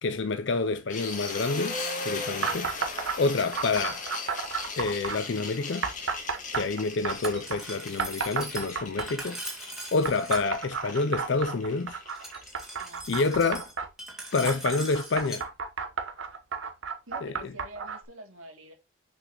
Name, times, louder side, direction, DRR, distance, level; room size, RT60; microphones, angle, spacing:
voice 1, 0.0-2.7 3.2-4.1 4.8-5.9 6.5-9.4 9.9-12.0 13.1-13.6 14.3-15.5 17.2-17.5, left 3 dB, 60° left, 0.5 m, -28 dB
sound 1, 0.9-12.9, left 3 dB, 40° left, 1.6 m, -38 dB
sound 2, 2.4-3.2 3.5-5.2 5.8-7.6 8.0-9.3 10.1-13.9 14.4-18.0, right 5 dB, 70° right, 1.1 m, -32 dB
Glass, 7.1-10.4 12.1-15.4, right 1 dB, ahead, 1.6 m, -41 dB
voice 2, 12.8-13.5 17.1-18.7, right 1 dB, 90° right, 2.5 m, -47 dB
6.5 x 6.0 x 3.0 m
head